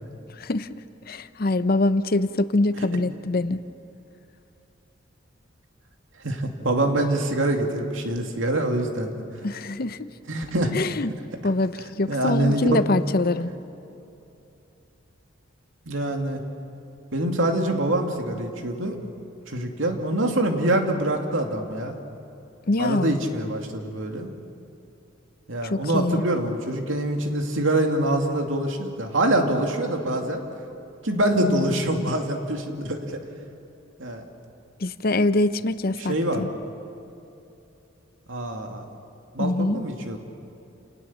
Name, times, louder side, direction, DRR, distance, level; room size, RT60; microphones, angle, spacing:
voice 1, 1.1-3.6 9.4-10.1 10.7-11.1 11.4-13.5 22.7-23.2 25.6-26.2 31.3-32.0 34.8-36.5 39.4-39.8, left 2 dB, 50° left, 13 dB, 0.7 m, -24 dB
voice 2, 6.2-9.1 10.3-10.7 12.1-12.8 15.9-16.4 17.1-19.0 19.5-22.0 22.8-24.3 25.5-30.4 31.0-33.2 34.0-34.2 36.0-36.5 38.3-38.8 39.3-40.2, right 1 dB, 80° right, 3 dB, 2.5 m, -25 dB
29.0 x 19.0 x 7.3 m, 2.8 s
head